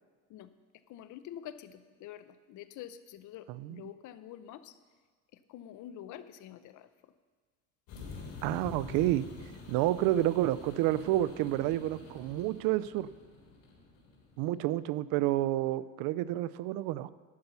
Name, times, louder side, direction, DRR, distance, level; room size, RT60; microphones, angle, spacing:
voice 1, 0.9-1.7 2.0-2.2 2.5-4.7 5.5-6.8, left 11 dB, 60° left, 12 dB, 0.7 m, -46 dB
voice 2, 3.5-3.9 8.4-9.2 9.7-13.1 14.4-17.1, right 14 dB, 80° right, 17 dB, 0.5 m, -29 dB
sound 1, 7.9-14.5, left 4 dB, 80° left, 3.7 m, -47 dB
11.5 x 5.5 x 8.0 m, 1.5 s
cardioid pair, 135°, 34 cm